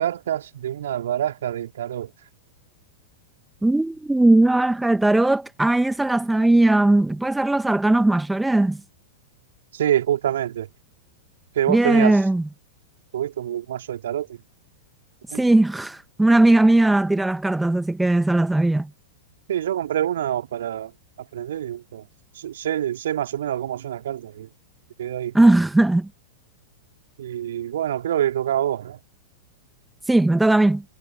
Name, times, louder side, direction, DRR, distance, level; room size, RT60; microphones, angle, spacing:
voice 1, 0.0-2.1 9.7-10.7 11.5-12.2 13.1-14.4 15.3-15.4 19.5-20.9 21.3-22.0 22.3-24.5 25.0-25.3 27.2-29.0, right 11 dB, 60° right, 2.6 m, -26 dB
voice 2, 3.6-8.8 11.7-12.5 15.3-18.9 25.3-26.1 30.1-30.8, right 2 dB, 5° right, 1.7 m, -18 dB
figure-of-eight pair, 95°, 0 cm